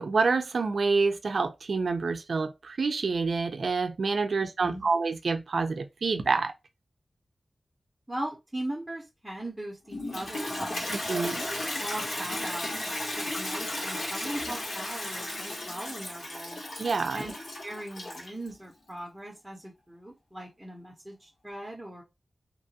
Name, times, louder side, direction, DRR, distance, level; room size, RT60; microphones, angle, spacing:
voice 1, 0.0-6.5 11.1-11.4 16.8-17.2, right 4 dB, 70° right, 0.4 m, -27 dB
voice 2, 8.1-10.9 11.3-16.6 17.1-17.3 17.6-22.0, right 1 dB, 5° right, 0.6 m, -39 dB
Toilet flush, 9.9-18.5, left 1 dB, 70° left, 1.3 m, -34 dB
2.9 x 2.3 x 2.7 m
wide cardioid pair, 120°, 0 cm